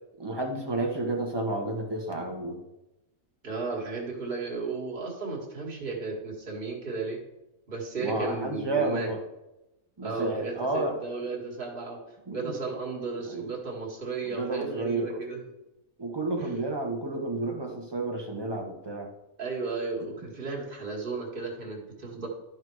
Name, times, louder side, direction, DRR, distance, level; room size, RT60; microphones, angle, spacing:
voice 1, 0.2-2.6 8.0-9.2 10.0-11.0 12.3-12.5 13.3-13.5 14.2-15.2 16.0-19.1 22.1-22.3, right 2 dB, 20° right, 1 dB, 1.3 m, -31 dB
voice 2, 3.4-7.2 7.7-9.1 10.0-12.0 12.3-15.4 16.4-16.6 19.4-22.3, right 4 dB, 40° right, -2 dB, 2.0 m, -34 dB
12.5 x 4.2 x 4.7 m, 0.94 s
omnidirectional pair, 1.4 m